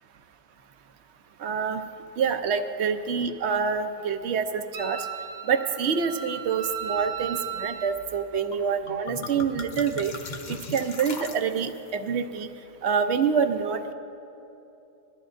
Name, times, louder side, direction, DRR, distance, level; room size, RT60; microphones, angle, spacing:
voice 1, 1.4-1.8 2.2-5.1 5.5-10.1 10.5-12.5 12.8-13.9, right 6 dB, 85° right, 8 dB, 1.0 m, -26 dB
Wind instrument woodwind instrument, 4.7-8.0, right 8 dB, 20° right, 0.7 m, -35 dB
sound 1, 8.5-8.6 8.9-11.9, left 3 dB, 50° left, 0.8 m, -38 dB
21.5 x 13.5 x 2.6 m, 3.0 s
omnidirectional pair, 1.1 m